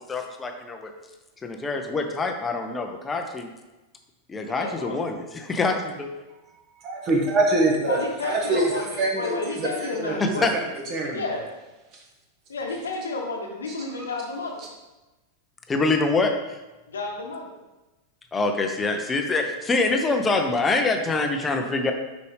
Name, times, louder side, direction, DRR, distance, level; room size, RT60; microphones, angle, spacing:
voice 1, 0.1-0.9 1.4-3.5 4.3-6.1 10.2-10.5 15.7-16.3 18.3-21.9, left 3 dB, 15° left, 5 dB, 0.7 m, -25 dB
voice 2, 4.5-5.0 7.8-10.6 11.1-11.5 12.5-14.6 16.9-17.5, left 3 dB, 70° left, 1 dB, 1.0 m, -31 dB
voice 3, 6.8-10.6 10.9-11.2 11.9-12.0 14.0-14.1, right 2 dB, 35° right, 0 dB, 1.5 m, -25 dB
6.7 x 5.2 x 3.3 m, 1.1 s
figure-of-eight pair, 90°, 0 cm